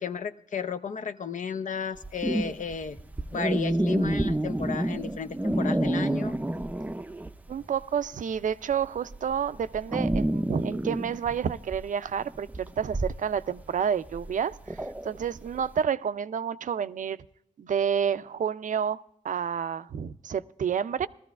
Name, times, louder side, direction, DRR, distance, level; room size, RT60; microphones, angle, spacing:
voice 1, 0.0-3.0 3.3-6.3, left 6 dB, 80° left, 0.6 m, -34 dB
sound 1, 1.9-7.5 7.8-15.7, right 1 dB, 10° right, 0.4 m, -29 dB
voice 2, 7.5-17.2 17.6-21.1, right 7 dB, 85° right, 0.4 m, -29 dB
19.5 x 13.5 x 2.4 m
wide cardioid pair, 85°, 13 cm